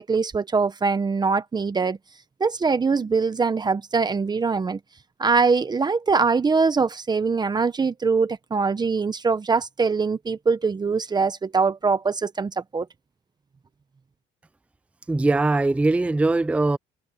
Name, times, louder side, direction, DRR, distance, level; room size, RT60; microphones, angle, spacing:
voice 1, 0.0-2.0 2.4-4.8 5.2-12.9, right 4 dB, 25° right, 1.1 m, -23 dB
voice 2, 15.1-16.8, right 2 dB, 5° right, 0.5 m, -21 dB
cardioid pair, 110°, 17 cm